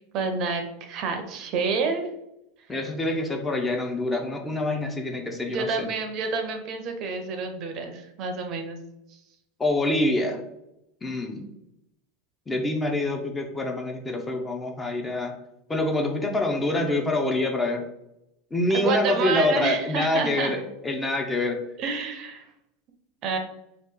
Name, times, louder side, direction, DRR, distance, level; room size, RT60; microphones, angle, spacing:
voice 1, 0.1-2.1 5.5-8.8 18.7-20.5 21.8-22.5 23.2-23.4, right 4 dB, 50° right, 6 dB, 0.5 m, -28 dB
voice 2, 2.7-5.9 9.6-10.4 11.0-11.5 12.5-15.3 15.7-17.8 18.5-21.6, left 2 dB, 15° left, 3 dB, 0.5 m, -26 dB
2.8 x 2.4 x 3.6 m, 0.85 s
supercardioid pair, 115°, 0 cm